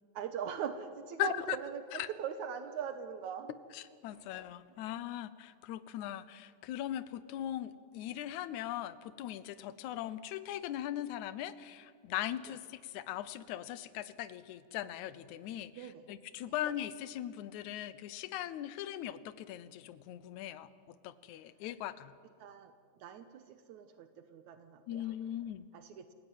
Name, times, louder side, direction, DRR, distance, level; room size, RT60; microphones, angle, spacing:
voice 1, 0.1-3.5 4.1-4.3 12.5-12.6 15.7-16.1 16.5-16.6 22.4-25.1 25.7-26.1, right 7 dB, 75° right, 9 dB, 2.4 m, -42 dB
voice 2, 1.2-1.6 3.7-15.7 16.1-22.1 24.9-25.7, left 12 dB, 75° left, 15 dB, 2.2 m, -39 dB
28.0 x 17.0 x 9.3 m, 2.3 s
omnidirectional pair, 3.5 m